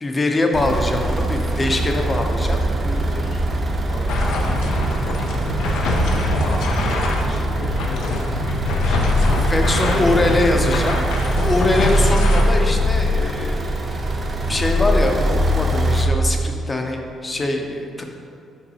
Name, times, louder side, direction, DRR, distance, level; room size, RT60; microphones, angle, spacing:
voice 1, 0.0-2.6 9.5-11.1 11.4-13.8 14.5-18.0, left 2 dB, 25° left, 3 dB, 0.7 m, -22 dB
sound 1, 0.5-16.1, equal, 40° right, 0.7 m, -22 dB
voice 2, 1.9-5.3 5.6-6.8 7.2-10.6, left 2 dB, 50° left, 1 dB, 0.9 m, -36 dB
sound 2, 4.1-12.4, left 1 dB, 90° left, 0.7 m, -24 dB
5.4 x 4.7 x 4.1 m, 2.5 s
cardioid pair, 90°, 0 cm